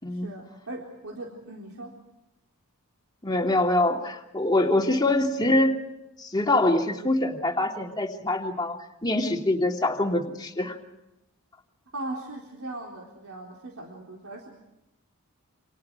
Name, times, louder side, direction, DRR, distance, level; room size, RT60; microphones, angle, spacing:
voice 1, 0.1-1.9 11.9-14.5, right 2 dB, 75° right, -1 dB, 3.9 m, -39 dB
voice 2, 3.2-5.8 6.2-10.8, left 2 dB, 20° left, 1 dB, 2.8 m, -24 dB
29.0 x 28.0 x 4.7 m, 0.92 s
head